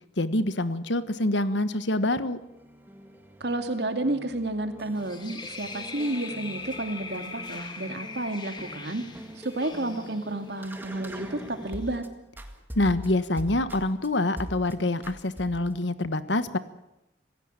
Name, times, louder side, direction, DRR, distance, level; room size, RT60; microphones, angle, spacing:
voice 1, 0.2-2.4 12.7-16.6, left 2 dB, 75° left, 13 dB, 1.4 m, -26 dB
sound 1, 2.3-12.1 12.4-14.1 14.4-14.7 15.0-15.8, equal, 10° right, 1.8 m, -43 dB
voice 2, 3.4-9.0 9.4-12.0, right 1 dB, 65° right, 7 dB, 2.5 m, -31 dB
sound 2, 5.0-11.9, left 4 dB, 25° left, 2.0 m, -42 dB
26.5 x 16.0 x 8.9 m, 0.91 s
head